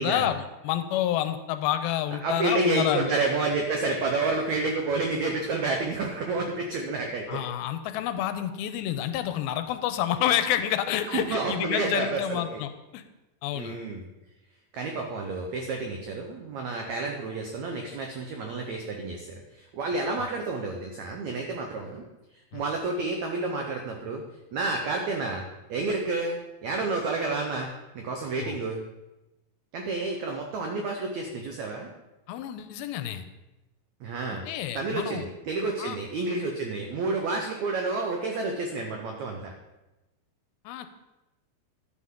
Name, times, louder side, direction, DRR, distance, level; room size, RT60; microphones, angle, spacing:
voice 1, 0.0-3.1 7.3-13.0 13.4-13.8 22.5-22.6 28.4-28.6 32.3-33.2 34.5-35.2 35.8-36.0 40.7-40.9, left 11 dB, 85° left, 10 dB, 2.4 m, -29 dB
voice 2, 2.2-7.4 11.1-12.6 13.5-14.1 14.7-22.0 22.5-24.2 24.5-27.7 27.9-28.8 29.7-31.9 34.0-34.4 34.7-39.5, right 3 dB, 80° right, 2 dB, 1.6 m, -30 dB
11.5 x 8.4 x 3.7 m, 1.0 s
omnidirectional pair, 4.3 m